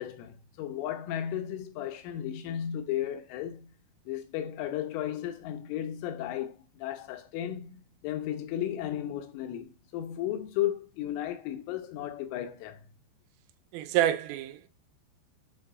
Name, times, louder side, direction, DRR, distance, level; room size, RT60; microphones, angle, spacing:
voice 1, 0.0-3.7 4.1-7.8 8.0-12.9, left 11 dB, 80° left, 3.0 m, -34 dB
voice 2, 13.7-14.7, right 12 dB, 85° right, 3.2 m, -27 dB
7.5 x 2.7 x 4.6 m
omnidirectional pair, 5.7 m